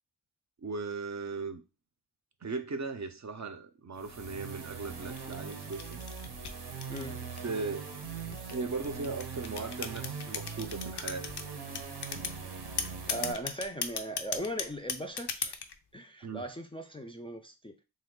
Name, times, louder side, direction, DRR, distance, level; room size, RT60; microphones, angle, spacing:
voice 1, 0.6-1.6 2.4-6.0 7.4-7.9 8.5-11.3 16.2-16.4, right 4 dB, 45° right, 0.5 m, -37 dB
sound 1, 4.0-13.3, right 5 dB, 85° right, 0.7 m, -41 dB
sound 2, 5.2-7.6 8.3-11.4 11.8-12.4 12.8-15.8, left 6 dB, 90° left, 0.5 m, -36 dB
voice 2, 13.1-15.6 15.9-17.8, right 1 dB, 15° left, 0.3 m, -39 dB
3.2 x 2.2 x 3.6 m
wide cardioid pair, 55°, 39 cm